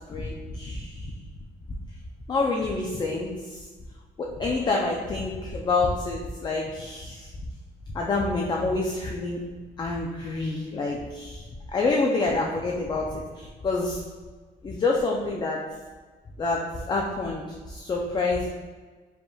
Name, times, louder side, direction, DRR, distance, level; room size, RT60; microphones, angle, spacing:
voice 1, 0.1-1.1 2.3-3.7 4.2-7.3 7.9-9.4 9.8-14.0 14.6-15.6 16.4-18.5, left 3 dB, 25° left, -1 dB, 0.4 m, -27 dB
4.9 x 3.5 x 2.3 m, 1.4 s
cardioid pair, 110°, 17 cm